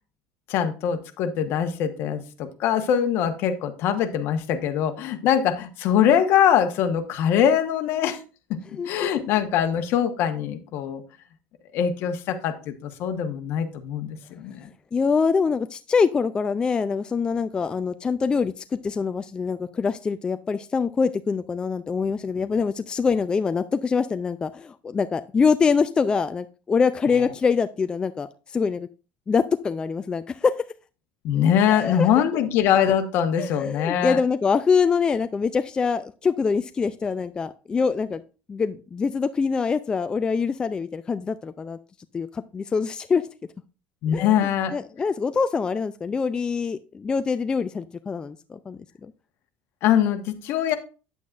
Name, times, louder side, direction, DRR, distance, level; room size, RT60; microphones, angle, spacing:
voice 1, 0.5-8.2 8.8-11.0 11.7-14.7 31.2-34.2 44.0-44.7 49.8-50.8, left 9 dB, 60° left, 8 dB, 1.2 m, -23 dB
voice 2, 8.7-9.1 14.9-28.9 29.3-30.5 31.7-32.1 33.4-38.2 38.5-41.8 42.1-43.3 44.1-44.3 44.7-49.1, left 5 dB, 20° left, 11 dB, 0.3 m, -24 dB
9.3 x 8.4 x 2.5 m, 0.34 s
cardioid pair, 140°, 5 cm